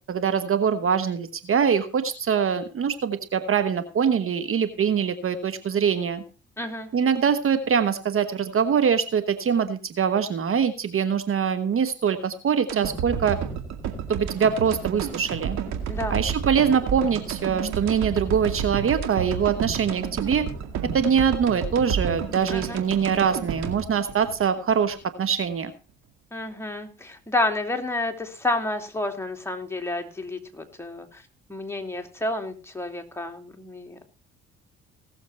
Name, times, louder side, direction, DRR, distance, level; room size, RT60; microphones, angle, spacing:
voice 1, 0.1-6.2 6.9-13.4 14.1-15.6 16.1-20.5 20.9-25.7, right 7 dB, 45° right, 11 dB, 1.2 m, -23 dB
voice 2, 6.6-6.9 15.9-16.2 22.5-22.8 26.3-34.0, left 2 dB, 10° left, 3 dB, 2.8 m, -30 dB
sound 1, 12.7-24.9 25.3-25.4, right 7 dB, 65° right, 2.2 m, -31 dB
18.0 x 7.2 x 4.2 m, 0.33 s
hypercardioid pair, 55°, 29 cm